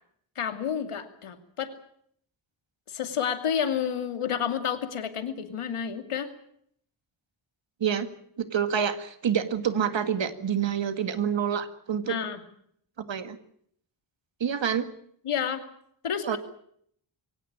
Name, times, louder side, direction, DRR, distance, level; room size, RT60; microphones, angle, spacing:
voice 1, 0.4-1.7 2.9-6.3 12.0-12.4 15.2-15.7 16.0-16.4, left 8 dB, 85° left, 8 dB, 2.7 m, -30 dB
voice 2, 8.4-12.2 13.1-13.4 14.4-14.9 16.2-16.4, right 8 dB, 60° right, 10 dB, 2.0 m, -27 dB
23.0 x 17.5 x 8.8 m, 0.67 s
wide cardioid pair, 135°, 49 cm